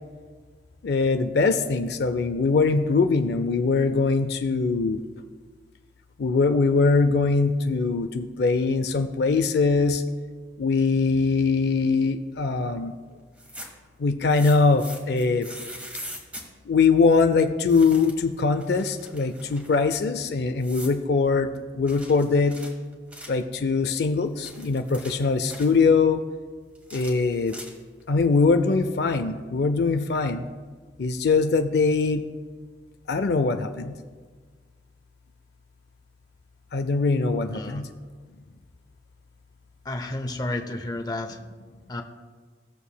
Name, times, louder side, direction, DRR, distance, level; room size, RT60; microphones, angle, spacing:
voice 1, 0.8-5.0 6.2-10.0 10.6-12.9 14.0-15.5 16.7-22.6 23.3-26.2 26.9-27.6 28.1-30.4 31.0-32.2 33.1-33.9 36.7-37.9, left 4 dB, 60° left, 9 dB, 0.4 m, -22 dB
sound 1, 13.3-13.9 14.3-16.5 17.7-18.3 18.6-19.8 20.6-21.0 21.9-23.4 24.2-25.7 26.7-28.0, equal, 5° right, 1.3 m, -41 dB
voice 2, 37.5-37.8 39.8-41.4 41.9-42.0, left 2 dB, 20° left, 5 dB, 0.6 m, -31 dB
17.0 x 7.1 x 2.2 m, 1.5 s
head